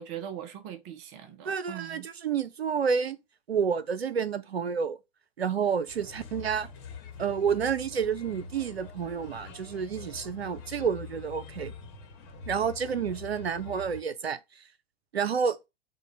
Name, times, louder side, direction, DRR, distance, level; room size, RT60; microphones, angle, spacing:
voice 1, 0.0-2.1, right 10 dB, 30° right, 0.5 m, -41 dB
voice 2, 1.5-3.2 3.5-5.0 5.4-6.7 7.2-11.7 12.5-14.4 15.1-15.6, right 6 dB, 85° right, 0.5 m, -29 dB
Bird, 5.9-14.0, left 6 dB, 35° left, 1.1 m, -45 dB
3.7 x 2.1 x 3.9 m
figure-of-eight pair, 100°, 30 cm